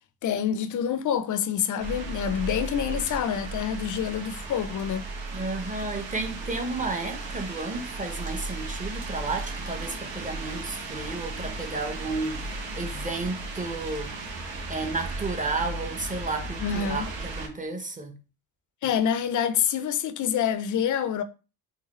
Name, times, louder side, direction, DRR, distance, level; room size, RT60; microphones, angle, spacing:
voice 1, 0.2-5.0 16.6-17.1 18.8-21.2, left 8 dB, 45° left, 0.5 m, -27 dB
sound 1, 1.8-17.5, right 3 dB, 70° right, 1.1 m, -35 dB
voice 2, 5.3-14.1 14.7-18.2, right 3 dB, 15° right, 0.8 m, -32 dB
3.8 x 2.2 x 3.0 m
hypercardioid pair, 55°, 45 cm